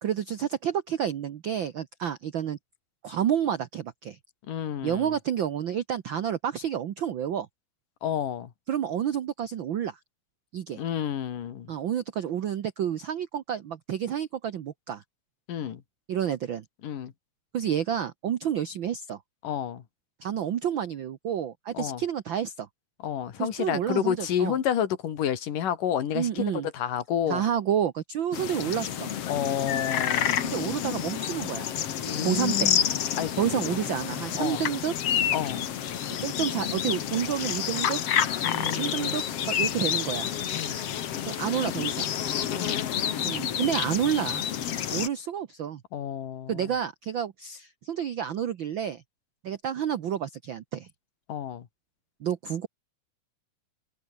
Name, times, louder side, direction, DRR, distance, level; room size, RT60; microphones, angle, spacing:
voice 1, 0.0-2.6 3.0-4.2 4.8-7.5 8.7-10.0 10.5-10.8 11.7-15.0 16.1-16.6 17.5-19.2 20.2-22.7 23.4-24.6 26.1-26.7 27.3-29.1 30.4-31.7 32.0-32.7 33.4-34.9 36.2-38.0 38.6-40.3 41.3-42.1 43.2-44.5 44.9-45.8 46.5-49.0 49.4-50.9 52.2-52.7, right 9 dB, 85° right, 1.0 m, -29 dB
voice 2, 4.5-5.2 8.0-8.5 10.8-11.7 15.5-15.8 16.8-17.1 19.4-19.8 21.7-22.0 23.0-27.4 29.3-30.4 32.1-32.9 33.2-33.5 34.4-34.6 35.3-35.7 38.4-39.2 40.5-40.8 42.5-43.0 45.9-46.8 51.3-51.7, left 9 dB, 90° left, 3.7 m, -30 dB
sound 1, 28.3-45.1, left 9 dB, 55° left, 2.4 m, -29 dB
omnidirectional pair, 3.7 m